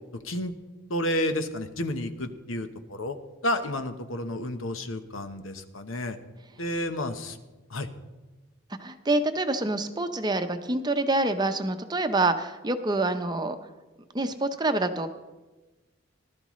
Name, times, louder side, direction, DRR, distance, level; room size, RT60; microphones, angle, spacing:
voice 1, 0.9-3.2 3.4-6.2 6.6-7.4 7.7-7.9, left 1 dB, 85° left, 8 dB, 1.0 m, -31 dB
voice 2, 8.8-13.6 14.1-15.1, right 2 dB, 20° right, 8 dB, 0.7 m, -26 dB
18.5 x 12.0 x 3.1 m, 1.2 s
head